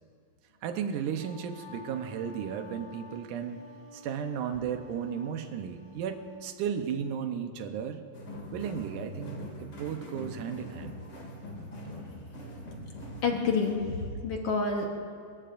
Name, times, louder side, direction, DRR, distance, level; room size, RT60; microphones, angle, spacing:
voice 1, 0.6-3.6 3.9-8.0 8.5-11.0, right 8 dB, 75° right, 7 dB, 2.3 m, -34 dB
Wind instrument woodwind instrument, 0.9-6.3, left 3 dB, 90° left, 4.0 m, -52 dB
sound 1, 8.1-13.8, equal, 35° left, 2.7 m, -42 dB
voice 2, 13.2-14.9, left 4 dB, 60° left, 1 dB, 1.8 m, -28 dB
28.5 x 15.5 x 2.6 m, 2.4 s
omnidirectional pair, 3.9 m